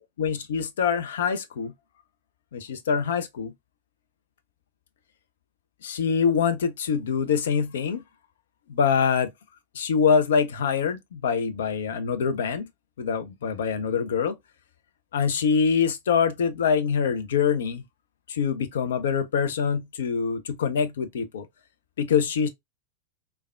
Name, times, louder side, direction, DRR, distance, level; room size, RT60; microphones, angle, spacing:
voice 1, 0.2-1.7 2.5-3.5 5.8-8.0 8.7-9.3 9.7-12.7 13.0-14.4 15.1-17.8 18.3-21.4 22.0-22.5, left 6 dB, 60° left, 0.4 m, -24 dB
3.3 x 2.2 x 2.2 m
figure-of-eight pair, 90°, 0 cm